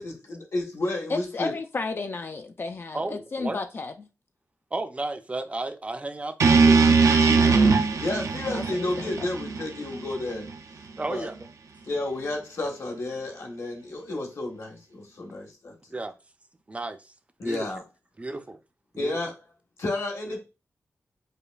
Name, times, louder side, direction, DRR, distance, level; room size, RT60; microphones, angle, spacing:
voice 1, 0.0-1.5 8.0-10.5 11.1-11.3 11.9-15.7 17.4-17.8 19.0-19.3 19.8-20.4, left 2 dB, 70° left, 1.2 m, -31 dB
voice 2, 1.1-4.1 7.3-7.6 8.5-9.3, left 3 dB, 45° left, 0.3 m, -33 dB
voice 3, 2.9-3.6 4.7-6.9 11.0-11.3 15.9-16.1 16.7-17.1 17.4-17.7 18.2-18.6 18.9-19.1, right 2 dB, 25° right, 0.4 m, -33 dB
sound 1, 6.4-10.5, right 4 dB, 75° right, 0.5 m, -20 dB
5.0 x 2.5 x 2.3 m
wide cardioid pair, 105°, 5 cm